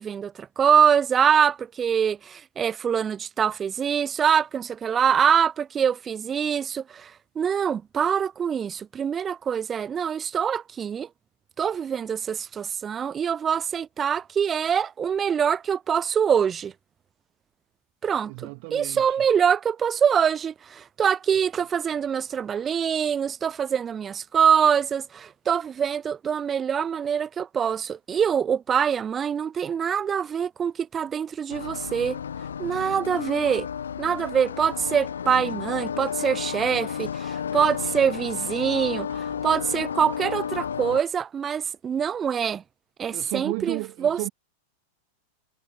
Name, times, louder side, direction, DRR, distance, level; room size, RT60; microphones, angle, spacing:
voice 1, 0.0-11.1 11.6-16.7 18.0-18.3 18.7-32.2 32.6-33.7 34.0-42.6 43.0-44.3, right 7 dB, 20° right, 0.4 m, -24 dB
voice 2, 18.3-19.3 43.1-44.3, right 37 dB, 45° right, 2.6 m, -33 dB
sound 1, 31.5-41.0, left 8 dB, 70° left, 1.1 m, -32 dB
figure-of-eight pair, 90°, 0 cm